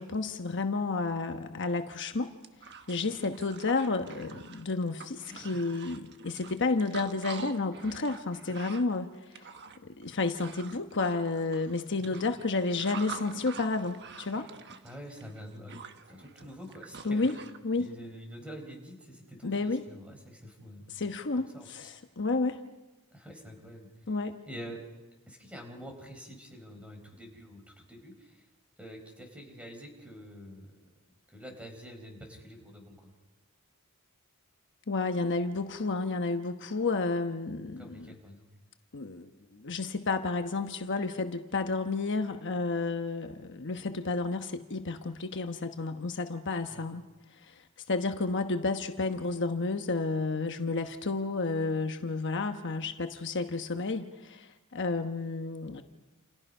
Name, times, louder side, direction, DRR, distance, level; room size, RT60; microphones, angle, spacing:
voice 1, 0.0-2.3 2.9-9.4 9.8-14.5 17.0-17.3 17.6-17.9 19.4-19.9 20.9-22.6 24.1-24.4 34.9-38.1 38.9-47.0 47.4-47.5 47.9-55.8, left 3 dB, 55° left, 6 dB, 1.1 m, -31 dB
sound 1, 1.9-2.0 2.3-17.6, right 5 dB, 50° right, 1.3 m, -46 dB
voice 2, 5.3-5.6 12.1-12.2 14.8-15.8 16.1-17.3 17.8-20.9 21.5-21.9 23.1-23.9 24.5-24.8 25.3-28.5 28.8-30.7 31.3-33.1 37.8-38.5 46.7-46.8, equal, 5° right, 3 dB, 4.6 m, -46 dB
29.0 x 28.5 x 5.5 m, 1.1 s
head